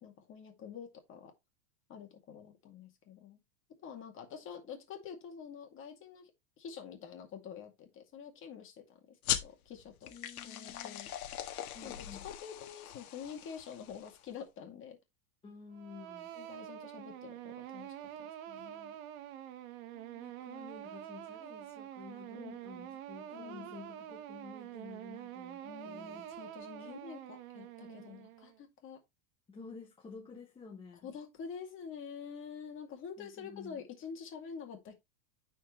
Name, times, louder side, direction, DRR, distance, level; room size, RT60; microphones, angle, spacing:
voice 1, 0.0-1.3 1.9-3.4 3.8-6.3 6.6-10.1 10.4-11.1 11.8-15.0 16.3-19.0 22.3-23.0 23.3-23.8 25.6-29.0 31.0-34.9, left 7 dB, 30° left, 2.2 m, -47 dB
sound 1, 9.2-14.3, left 11 dB, 85° left, 1.6 m, -40 dB
voice 2, 10.1-11.0 11.7-12.3 15.4-16.3 19.9-26.2 26.8-27.0 27.9-28.2 29.5-31.1 33.2-33.8, left 5 dB, 10° left, 1.1 m, -51 dB
sound 2, 15.7-28.6, right 11 dB, 70° right, 1.3 m, -47 dB
9.5 x 4.6 x 3.1 m
supercardioid pair, 155°, 43 cm